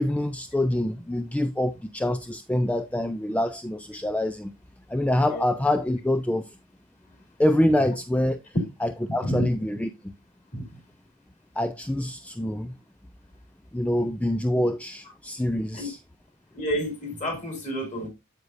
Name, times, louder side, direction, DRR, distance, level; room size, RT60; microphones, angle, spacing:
voice 1, 0.0-4.5 4.9-6.6 7.4-8.4 8.8-10.1 11.6-12.8 13.7-16.0, left 1 dB, 5° left, 0.3 m, -25 dB
voice 2, 16.5-18.1, equal, 35° left, 3.5 m, -30 dB
8.0 x 8.0 x 2.6 m
head